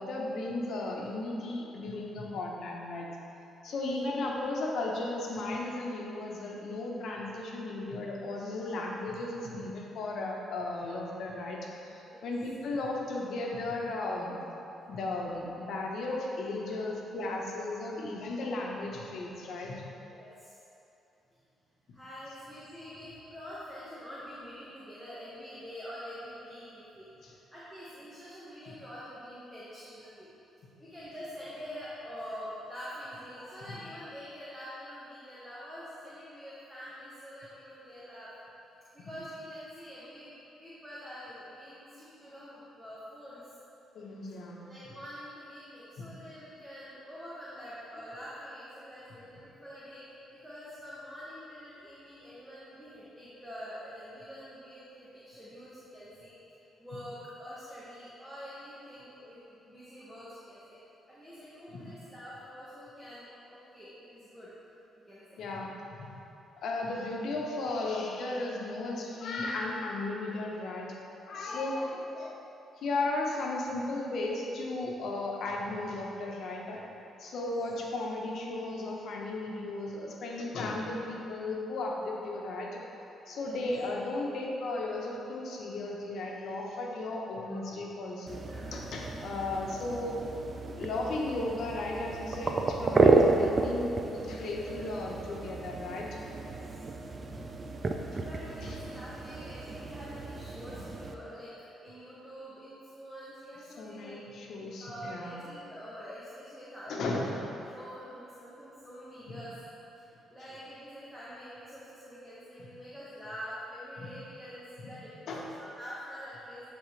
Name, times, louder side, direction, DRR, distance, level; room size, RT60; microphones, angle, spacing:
voice 1, 0.0-3.1 3.6-14.4 14.9-19.8 27.2-27.3 33.7-33.8 39.0-39.1 43.9-44.7 46.0-46.1 61.7-61.9 65.4-66.1 66.6-71.0 71.3-72.4 72.8-76.8 77.2-82.8 83.3-88.4 88.7-90.2 90.7-96.1 97.3-97.6 98.6-98.8 100.7-100.8 103.8-105.4 106.9-107.4 109.3-109.4 114.0-114.1 115.3-115.4, left 2 dB, 70° left, -2 dB, 1.1 m, -35 dB
voice 2, 20.1-20.6 21.9-30.3 30.8-38.3 38.9-43.4 44.6-56.3 56.8-60.8 61.1-64.5 65.1-65.4 71.4-71.7 77.3-77.5 83.3-83.6 84.7-85.0 88.5-88.7 96.7-96.8 98.1-101.5 101.8-104.2 104.8-107.4 107.7-109.6 110.3-115.5 115.8-116.6, equal, 10° right, -10 dB, 1.4 m, -46 dB
sound 1, 88.3-101.1, right 3 dB, 35° right, 0.5 m, -31 dB
11.5 x 4.0 x 3.3 m, 3.0 s
cardioid pair, 90°, 0 cm